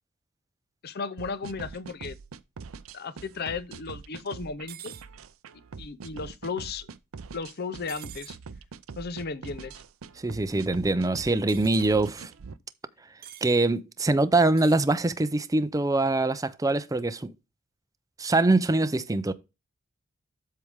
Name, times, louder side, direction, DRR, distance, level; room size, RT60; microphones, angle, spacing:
voice 1, 0.8-2.2 2.9-4.9 5.8-6.9 7.3-8.4 9.0-9.7, left 4 dB, 50° left, 0.7 m, -35 dB
sound 1, 1.2-12.6, right 5 dB, 75° right, 0.5 m, -43 dB
sound 2, 4.7-5.1 7.9-8.4 11.5-11.9 13.2-13.5 14.5-14.9, right 11 dB, 45° right, 0.8 m, -45 dB
voice 2, 10.2-12.3 13.4-17.3 18.2-19.3, right 2 dB, 15° right, 0.5 m, -24 dB
7.9 x 6.7 x 3.5 m
head